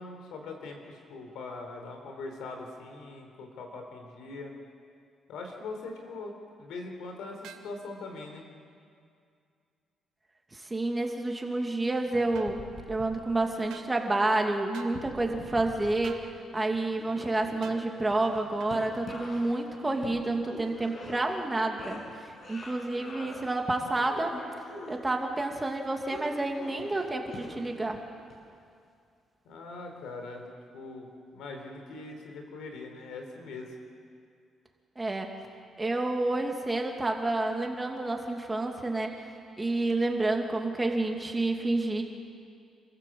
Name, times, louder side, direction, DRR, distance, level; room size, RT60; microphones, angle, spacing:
voice 1, 0.0-4.5 5.3-6.3 6.6-8.5 29.4-30.4 30.7-31.1 31.3-33.7, left 3 dB, 80° left, 3 dB, 4.1 m, -41 dB
sound 1, 7.4-7.7 12.3-12.5 13.7-13.9 14.7-15.0 16.0-16.3 17.6-17.8 18.6-18.8, right 9 dB, 85° right, 1.5 m, -47 dB
voice 2, 10.5-12.6 12.9-16.2 16.5-24.4 24.9-28.0 35.0-35.3 35.8-39.1 39.6-42.0, right 2 dB, 20° right, 2 dB, 2.7 m, -29 dB
sound 2, 12.1-13.6 14.9-16.3 16.5-21.5 21.8-23.4 23.8-25.0 26.1-27.9 28.3-28.4, left 2 dB, 50° left, 6.8 m, -44 dB
28.5 x 15.0 x 7.8 m, 2.3 s
cardioid pair, 90°, 0 cm